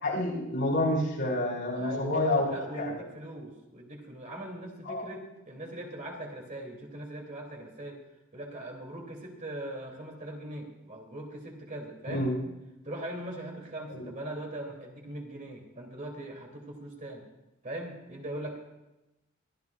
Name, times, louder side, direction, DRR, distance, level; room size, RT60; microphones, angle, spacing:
voice 1, 0.0-2.9 4.9-5.0 12.1-12.3 13.9-14.1, left 1 dB, 55° left, -3 dB, 5.5 m, -29 dB
voice 2, 1.7-8.0 8.3-12.3 12.8-17.2 17.6-18.6, right 1 dB, 35° right, 0 dB, 2.8 m, -40 dB
25.0 x 14.5 x 2.4 m, 0.95 s
head